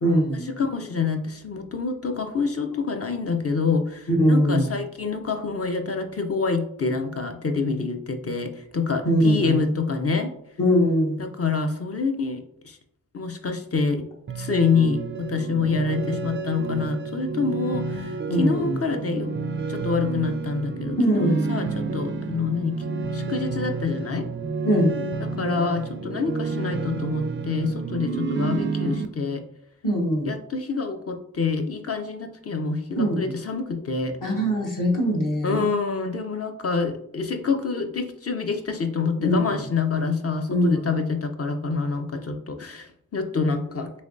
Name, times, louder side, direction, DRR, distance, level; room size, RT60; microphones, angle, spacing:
voice 1, 0.0-0.6 4.1-4.7 9.0-9.6 10.6-11.3 18.3-18.8 21.0-21.6 24.6-25.0 29.8-30.3 33.0-33.3 34.2-35.7 39.2-39.4 40.5-40.8, equal, 60° left, -2 dB, 1.3 m, -22 dB
voice 2, 0.6-10.3 11.2-12.8 13.1-14.1 14.4-19.3 19.7-22.8 23.1-24.3 25.4-29.4 30.2-34.2 35.4-43.9, left 4 dB, 40° left, 5 dB, 0.5 m, -27 dB
sound 1, 14.3-29.1, right 4 dB, 35° right, 0.4 m, -30 dB
3.2 x 3.0 x 2.6 m, 0.69 s
cardioid pair, 40°, 36 cm